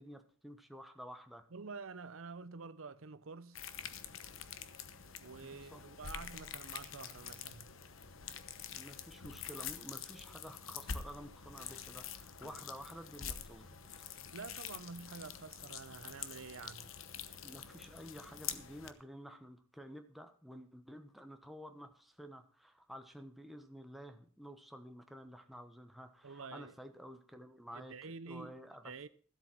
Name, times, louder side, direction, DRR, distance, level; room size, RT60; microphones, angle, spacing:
voice 1, 0.0-1.5 5.4-5.8 8.7-14.1 17.4-28.9, equal, ahead, 1.1 m, -51 dB
voice 2, 1.5-3.6 5.2-7.7 14.3-16.9 26.2-26.7 27.7-28.5 28.8-29.1, right 4 dB, 80° right, 0.7 m, -48 dB
sound 1, 3.5-18.9, left 7 dB, 75° left, 1.0 m, -46 dB
13.5 x 8.1 x 6.0 m
head